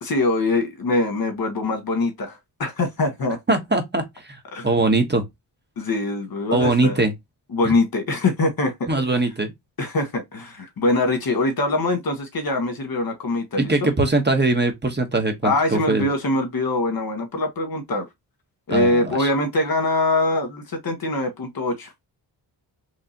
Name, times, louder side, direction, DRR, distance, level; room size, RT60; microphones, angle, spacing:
voice 1, 0.0-3.4 4.5-4.7 5.8-7.0 7.5-8.9 9.8-13.9 15.4-18.1 18.7-22.0, left 2 dB, 55° left, 1.4 m, -23 dB
voice 2, 3.5-5.2 6.5-7.1 7.6-7.7 8.9-9.5 13.6-16.1 18.7-19.3, right 2 dB, 25° right, 1.0 m, -21 dB
3.6 x 3.2 x 2.8 m
cardioid pair, 80°, 43 cm